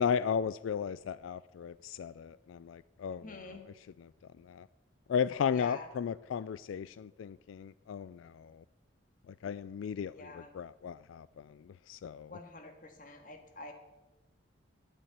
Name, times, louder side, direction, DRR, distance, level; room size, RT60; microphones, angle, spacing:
voice 1, 0.0-3.6 4.0-4.1 4.4-4.7 5.1-8.6 9.3-12.4, left 7 dB, 90° left, 17 dB, 0.3 m, -35 dB
voice 2, 3.2-3.7 5.5-5.9 10.1-10.6 12.3-13.7, left 3 dB, 45° left, 5 dB, 1.8 m, -47 dB
12.5 x 8.9 x 8.0 m, 1.1 s
head